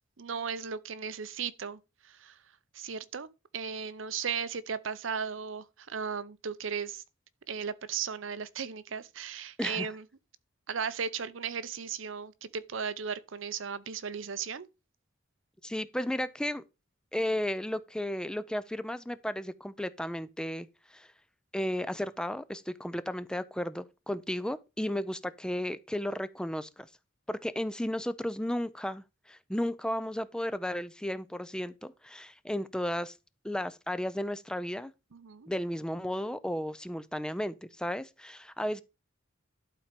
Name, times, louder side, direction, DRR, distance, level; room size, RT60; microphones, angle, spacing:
voice 1, 0.2-1.8 2.0-2.4 2.7-3.3 3.5-7.0 7.5-10.0 10.7-14.7 35.1-35.5, right 6 dB, 75° right, 0.7 m, -36 dB
voice 2, 15.6-16.6 17.1-20.7 20.9-21.1 21.5-26.9 27.3-33.1 33.4-34.9 35.5-38.8, left 1 dB, 5° left, 0.4 m, -34 dB
11.5 x 4.3 x 5.1 m
head